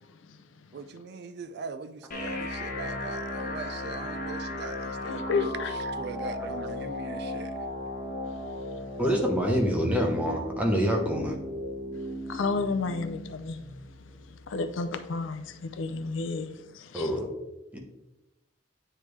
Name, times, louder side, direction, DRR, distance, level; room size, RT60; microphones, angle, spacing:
voice 1, 0.7-5.2 5.7-7.5, right 4 dB, 50° right, 0.3 m, -40 dB
sound 1, 2.1-16.1, left 1 dB, 40° left, 0.9 m, -36 dB
voice 2, 5.0-5.7 11.9-12.0 12.3-13.6 14.5-17.1, left 4 dB, 65° left, 0.5 m, -31 dB
voice 3, 9.0-11.3 16.9-17.3 17.7-17.8, equal, 5° right, 0.9 m, -26 dB
8.9 x 3.3 x 3.2 m
head